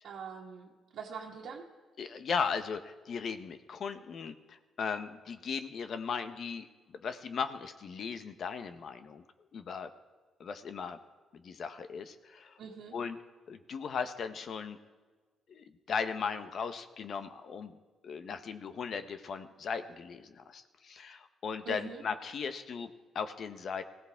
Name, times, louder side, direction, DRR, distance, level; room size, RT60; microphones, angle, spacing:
voice 1, 0.0-1.7 12.6-12.9 21.7-22.0, right 6 dB, 75° right, -5 dB, 1.7 m, -43 dB
voice 2, 2.0-9.2 9.5-9.9 10.4-11.0 11.3-12.6 12.9-13.2 13.5-14.8 15.5-17.8 18.0-23.8, left 6 dB, 55° left, 10 dB, 1.0 m, -37 dB
19.5 x 15.5 x 3.6 m, 1.4 s
cardioid pair, 90°, 0 cm